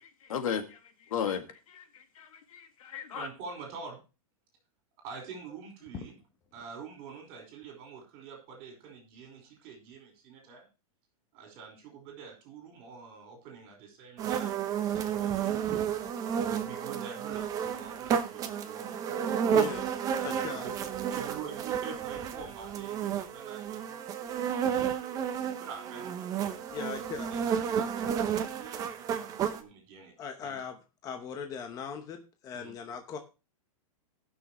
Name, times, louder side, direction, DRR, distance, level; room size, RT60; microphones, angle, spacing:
voice 1, 0.3-0.8 1.1-3.3, left 8 dB, 70° left, 8 dB, 1.9 m, -35 dB
voice 2, 3.1-4.0 5.0-6.1 6.5-10.7 11.3-15.8 16.4-19.3 20.0-20.7 21.1-26.6 27.1-30.1 30.4-30.6 32.5-32.7, right 5 dB, 35° right, 3 dB, 5.0 m, -46 dB
sound 1, 14.2-29.6, right 8 dB, 20° right, 0.8 m, -31 dB
voice 3, 19.5-19.9 20.2-20.7 26.7-27.4 30.2-33.2, left 6 dB, 20° left, 5 dB, 0.9 m, -39 dB
19.0 x 6.3 x 3.0 m, 0.30 s
supercardioid pair, 160°, 18 cm